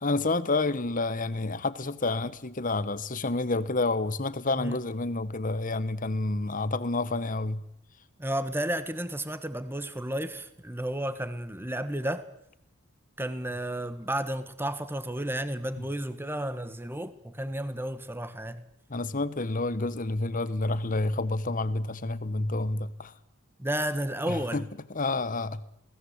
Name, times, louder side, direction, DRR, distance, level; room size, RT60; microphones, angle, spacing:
voice 1, 0.0-7.6 18.9-23.1 24.3-25.6, left 2 dB, 35° left, 1.2 m, -29 dB
voice 2, 8.2-12.3 13.2-18.6 23.6-24.7, right 1 dB, 10° right, 1.6 m, -32 dB
28.0 x 19.0 x 8.1 m
head